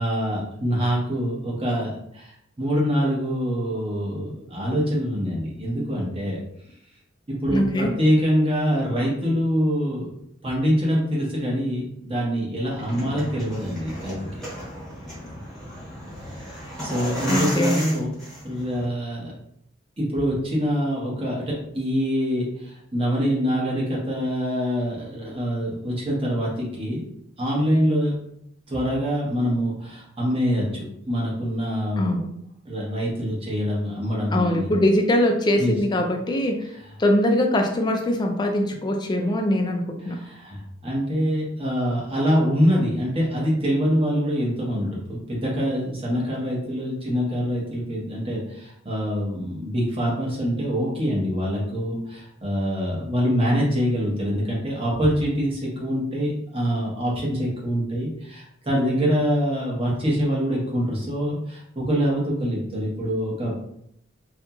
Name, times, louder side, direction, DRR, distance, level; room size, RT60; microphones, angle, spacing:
voice 1, 0.0-2.3 2.6-6.4 7.3-10.1 10.4-14.5 16.4-16.5 16.8-18.1 18.4-19.3 20.0-27.0 27.4-28.1 28.7-32.1 32.7-34.7 35.6-35.7 40.0-63.6, equal, 30° right, -4 dB, 0.9 m, -25 dB
voice 2, 7.5-7.9 17.3-17.8 32.0-32.3 34.3-36.7 37.0-40.2, left 1 dB, 20° left, 3 dB, 0.3 m, -22 dB
sound 1, 12.7-18.9, equal, 5° left, 1.0 m, -34 dB
2.8 x 2.6 x 2.3 m, 0.72 s
head